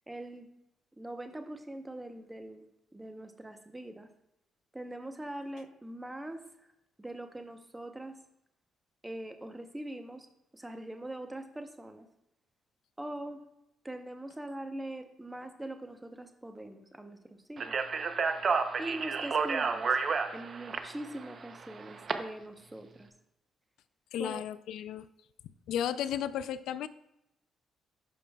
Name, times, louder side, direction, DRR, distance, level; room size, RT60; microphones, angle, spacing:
voice 1, 0.1-0.5 1.0-2.6 2.9-4.1 4.7-6.4 7.0-8.2 9.0-10.3 10.5-12.1 13.0-13.4 13.8-17.7 18.8-20.0 20.3-23.1 24.2-24.4, right 1 dB, 10° right, 7 dB, 0.8 m, -42 dB
Speech, 17.6-22.1, right 5 dB, 45° right, 0.6 m, -31 dB
voice 2, 24.1-25.1 25.7-26.9, left 10 dB, 80° left, 15 dB, 0.3 m, -34 dB
11.5 x 5.1 x 2.3 m, 0.84 s
cardioid pair, 90°, 0 cm